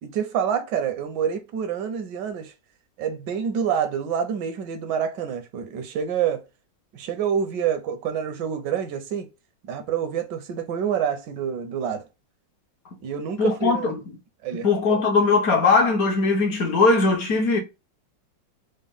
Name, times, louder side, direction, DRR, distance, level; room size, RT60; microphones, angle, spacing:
voice 1, 0.0-2.5 3.0-6.4 6.9-9.3 9.6-12.1 13.0-13.9 14.4-14.7, right 8 dB, 75° right, 1.2 m, -27 dB
voice 2, 13.4-14.0 14.5-17.6, left 3 dB, 60° left, 1.1 m, -20 dB
4.1 x 2.1 x 3.4 m
omnidirectional pair, 2.0 m